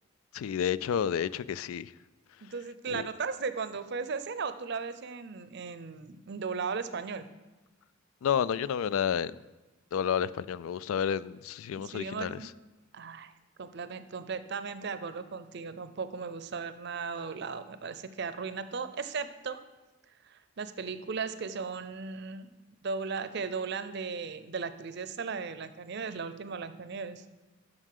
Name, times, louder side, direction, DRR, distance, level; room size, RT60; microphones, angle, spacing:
voice 1, 0.3-1.9 2.9-3.0 8.2-9.4 9.9-12.4, left 8 dB, 85° left, 18 dB, 0.3 m, -30 dB
voice 2, 2.4-7.3 11.9-12.5 12.9-13.3 13.6-19.6 20.3-22.5 22.8-27.2, right 5 dB, 55° right, 12 dB, 0.5 m, -36 dB
7.4 x 6.2 x 6.6 m, 1.1 s
head